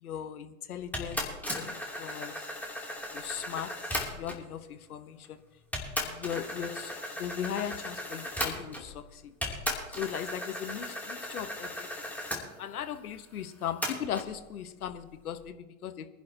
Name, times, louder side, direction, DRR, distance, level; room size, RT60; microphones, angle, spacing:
voice 1, 0.0-1.2 1.5-2.3 3.1-3.7 4.1-5.4 6.0-9.3 10.0-12.1 12.6-16.1, left 9 dB, 80° left, 12 dB, 1.1 m, -38 dB
sound 1, 0.9-4.5 5.2-5.3 5.7-9.0 9.4-12.4 13.8-14.3, left 1 dB, 5° left, 2.8 m, -36 dB
23.5 x 10.5 x 2.8 m, 1.1 s
hypercardioid pair, 100°, 44 cm